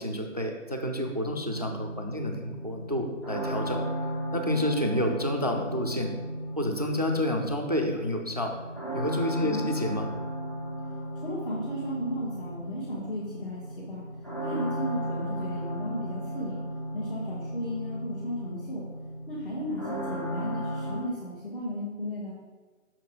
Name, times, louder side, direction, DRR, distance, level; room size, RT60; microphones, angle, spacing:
voice 1, 0.0-3.8 4.3-6.1 6.6-8.5 8.9-10.1, left 1 dB, 30° right, 4 dB, 0.4 m, -29 dB
sound 1, 1.5-21.0, right 1 dB, 20° left, 0.6 m, -35 dB
voice 2, 9.4-9.7 11.2-14.0 14.4-16.6 16.9-18.9 19.3-22.3, equal, 45° left, -9 dB, 1.7 m, -35 dB
6.2 x 4.2 x 4.9 m, 1.3 s
figure-of-eight pair, 150°, 40 cm